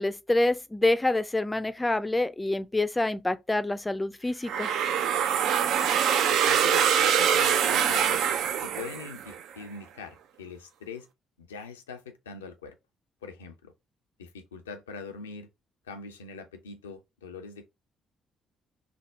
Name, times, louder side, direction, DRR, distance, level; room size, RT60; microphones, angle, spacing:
voice 1, 0.0-4.7, left 2 dB, 15° left, 0.4 m, -27 dB
sound 1, 4.5-9.4, right 8 dB, 60° right, 0.4 m, -24 dB
voice 2, 6.3-8.3 8.6-11.1 11.4-12.8 13.2-13.7 14.2-15.5 15.9-17.7, left 5 dB, 75° left, 0.4 m, -42 dB
3.4 x 2.1 x 4.0 m
figure-of-eight pair, 40°, 0 cm